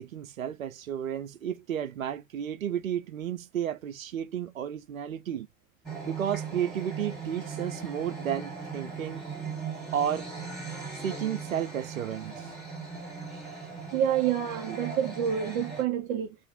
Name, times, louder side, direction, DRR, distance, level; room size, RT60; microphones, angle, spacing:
voice 1, 0.0-5.5 6.0-9.2 9.9-10.3 10.9-12.5, right 9 dB, 80° right, 0.5 m, -32 dB
sound 1, 5.8-15.8, right 5 dB, ahead, 1.3 m, -39 dB
voice 2, 13.9-16.4, right 9 dB, 25° right, 0.4 m, -28 dB
2.4 x 2.0 x 2.6 m
figure-of-eight pair, 85°, 40 cm